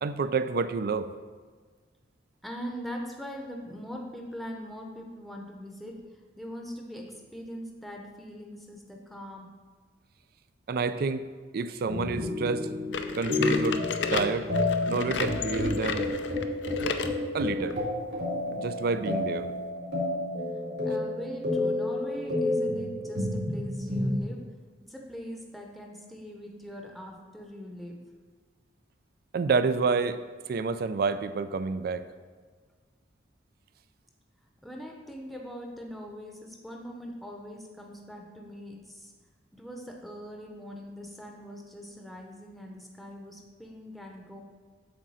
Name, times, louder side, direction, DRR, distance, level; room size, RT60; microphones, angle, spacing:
voice 1, 0.0-1.1 10.7-11.3 11.5-12.7 13.2-13.8 14.1-14.5 14.9-16.1 17.3-17.8 18.6-19.5 29.3-32.1, right 4 dB, 60° right, 12 dB, 0.4 m, -29 dB
voice 2, 2.4-9.5 20.8-24.4 24.9-28.0 34.6-39.1 39.5-44.4, equal, ahead, 1 dB, 0.7 m, -42 dB
sound 1, 11.9-24.2, left 2 dB, 75° right, 2.4 m, -30 dB
sound 2, 12.9-17.2 17.7-17.8 18.5-18.6 19.5-19.6, left 5 dB, 85° left, 0.5 m, -32 dB
8.0 x 3.8 x 6.3 m, 1.5 s
head